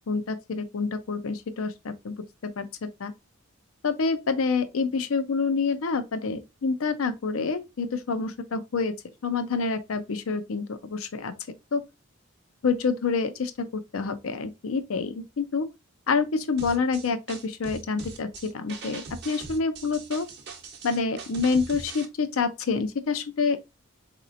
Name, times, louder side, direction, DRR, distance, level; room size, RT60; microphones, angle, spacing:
voice 1, 0.0-2.1 2.4-3.1 3.8-8.9 9.2-11.3 11.7-11.8 12.6-15.7 16.1-20.3 20.8-23.6, left 4 dB, 70° left, 0.5 m, -27 dB
sound 1, 16.6-22.1, right 4 dB, 55° right, 0.8 m, -41 dB
4.0 x 2.9 x 2.5 m
head